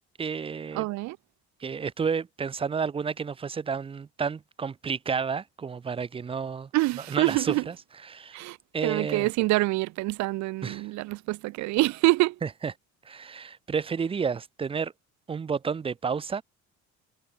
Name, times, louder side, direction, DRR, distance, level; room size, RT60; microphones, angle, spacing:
voice 1, 0.2-0.9 1.6-6.7 7.1-7.7 8.1-8.4 8.7-9.3 10.6-10.9 12.4-12.7 13.0-14.9 15.3-16.4, right 6 dB, 20° right, 0.8 m, -31 dB
voice 2, 0.7-1.2 6.7-7.7 8.3-12.4, right 20 dB, 70° right, 0.9 m, -26 dB
cardioid pair, 165°, 29 cm